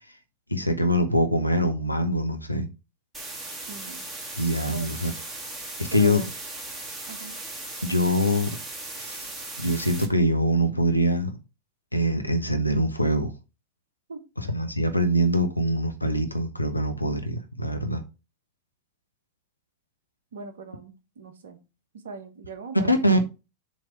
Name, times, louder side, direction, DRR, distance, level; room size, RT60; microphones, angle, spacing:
voice 1, 0.5-2.7 4.4-5.1 5.8-6.2 7.8-8.6 9.0-9.3 9.6-11.4 11.9-13.3 14.4-18.0 22.9-23.2, equal, 85° left, 0.8 m, -24 dB
sound 1, 3.1-10.1, right 2 dB, 15° right, 2.4 m, -37 dB
voice 2, 3.7-4.1 4.7-4.9 5.9-6.3 7.1-7.4 14.1-14.3 20.3-21.6 21.9-23.1, right 4 dB, 60° right, 1.3 m, -40 dB
7.1 x 3.3 x 5.8 m
figure-of-eight pair, 90°, 0 cm